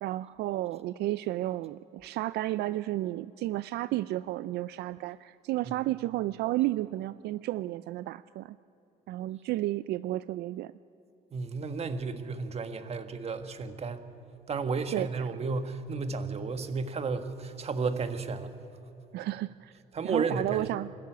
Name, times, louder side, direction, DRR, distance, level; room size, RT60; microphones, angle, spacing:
voice 1, 0.0-8.6 9.1-10.7 14.9-15.1 19.1-19.7 20.0-20.9, right 16 dB, 75° right, 16 dB, 0.4 m, -32 dB
voice 2, 11.3-14.0 14.5-18.6 19.9-20.6, right 4 dB, 40° right, 8 dB, 1.6 m, -32 dB
25.5 x 13.5 x 9.2 m, 2.9 s
cardioid pair, 110°, 17 cm